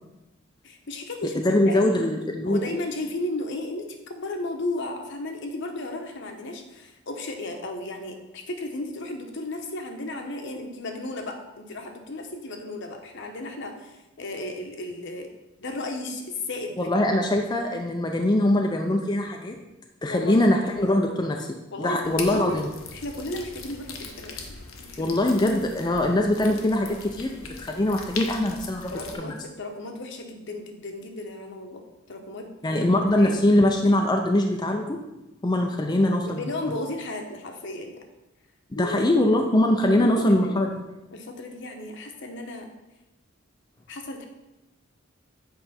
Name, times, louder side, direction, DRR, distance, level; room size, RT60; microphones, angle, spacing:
voice 1, 0.6-1.9 2.5-15.3 15.6-17.1 20.1-20.4 21.7-22.6 22.9-25.5 27.7-28.0 28.9-32.9 33.2-33.4 36.2-38.0 38.8-39.3 39.9-40.6 41.1-42.7 43.9-44.3, left 2 dB, 60° left, 4 dB, 1.0 m, -34 dB
voice 2, 1.4-2.6 16.8-19.6 20.0-22.7 25.0-28.9 29.2-29.3 32.6-35.0 35.4-36.4 36.7-36.8 38.7-40.7, left 1 dB, 20° left, 2 dB, 0.5 m, -22 dB
sound 1, 22.0-29.1, left 4 dB, 85° left, 1.0 m, -40 dB
8.0 x 4.9 x 4.2 m, 1.0 s
head